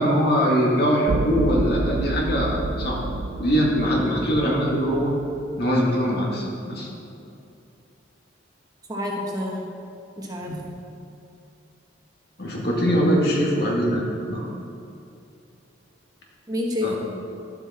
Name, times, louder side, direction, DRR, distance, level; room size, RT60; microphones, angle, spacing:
voice 1, 0.0-3.0 3.4-5.1 5.6-6.9 10.5-10.6 12.4-14.5 16.8-17.0, equal, 55° left, -3 dB, 2.0 m, -22 dB
sound 1, 1.1-5.4, right 2 dB, 65° right, 0.5 m, -29 dB
voice 2, 8.9-9.7 10.2-10.5 16.5-17.0, left 1 dB, 20° right, -2 dB, 1.2 m, -28 dB
11.5 x 8.0 x 4.3 m, 2.6 s
head